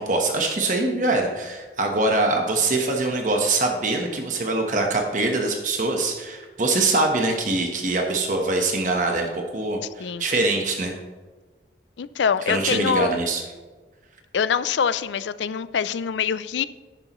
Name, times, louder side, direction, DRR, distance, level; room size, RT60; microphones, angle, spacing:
voice 1, 0.0-11.0 12.5-13.4, right 2 dB, 45° right, 2 dB, 1.2 m, -23 dB
voice 2, 12.0-13.2 14.3-16.7, left 6 dB, 85° left, 16 dB, 0.4 m, -24 dB
10.5 x 10.5 x 3.1 m, 1.3 s
head